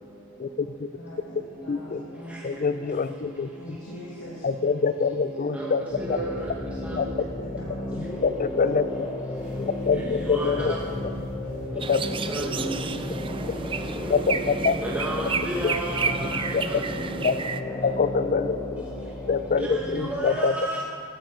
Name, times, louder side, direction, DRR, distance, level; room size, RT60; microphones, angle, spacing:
voice 1, 0.9-2.6 3.5-4.7 5.1-5.2 6.8-7.0 7.4-8.2 10.0-11.1 12.5-13.9 16.5-17.3 17.6-17.9 19.4-20.3 20.6-20.8, equal, 80° left, -7 dB, 2.6 m, -44 dB
voice 2, 1.7-2.0 2.4-3.5 4.4-5.8 7.0-7.1 8.2-8.9 9.9-10.7 11.7-12.0 14.1-14.7 15.6-15.7 17.2-17.4 17.8-18.6 19.3-20.5, left 5 dB, 40° left, 14 dB, 0.4 m, -24 dB
sound 1, 5.9-20.3, left 1 dB, 20° left, 0.8 m, -34 dB
voice 3, 6.0-6.3 6.8-6.9 10.3-10.5 12.3-12.6 14.8-16.4 16.7-16.8 19.6-20.8, right 1 dB, 5° right, -4 dB, 1.1 m, -31 dB
sound 2, 9.3-14.7, equal, 55° right, 4.2 m, -49 dB
sound 3, 11.8-17.6, right 5 dB, 25° right, 0.4 m, -31 dB
14.0 x 13.0 x 4.4 m, 2.2 s
head